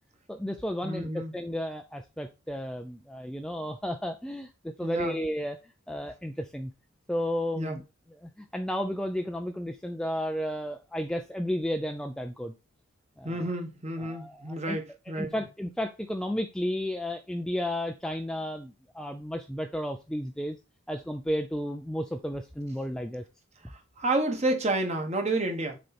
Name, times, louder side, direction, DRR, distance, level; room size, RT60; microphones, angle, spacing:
voice 1, 0.3-6.7 7.1-7.8 8.2-12.5 13.2-13.4 14.0-14.8 15.2-20.6 20.9-23.2, equal, 5° left, 0.4 m, -33 dB
voice 2, 0.8-1.3 4.8-5.2 7.5-7.8 13.2-15.3 24.0-25.8, right 2 dB, 30° right, 1.3 m, -30 dB
6.4 x 4.4 x 4.3 m
head